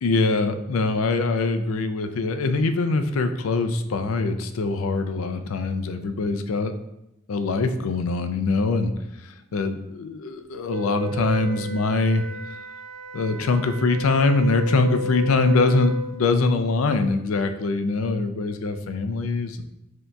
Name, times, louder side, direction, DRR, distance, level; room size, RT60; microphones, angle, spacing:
voice 1, 0.0-6.7 7.3-8.9 9.2-12.2 13.1-19.6, left 3 dB, 80° left, 8 dB, 0.4 m, -23 dB
Wind instrument woodwind instrument, 10.7-16.1, equal, 40° right, 0.5 m, -33 dB
7.6 x 2.8 x 2.3 m, 0.87 s
head